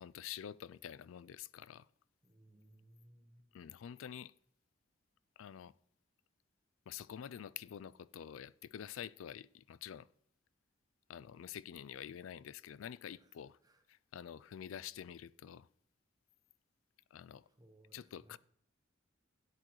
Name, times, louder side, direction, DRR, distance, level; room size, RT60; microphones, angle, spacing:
voice 1, 0.0-1.9 3.5-4.3 5.4-5.7 6.9-10.1 11.1-13.6 13.9-15.7 17.1-17.4 17.9-18.4, left 9 dB, 90° left, 0.4 m, -48 dB
voice 2, 2.2-3.6 13.1-13.3 13.6-13.8 17.5-18.4, right 1 dB, 20° right, 1.1 m, -64 dB
13.0 x 10.0 x 3.1 m
head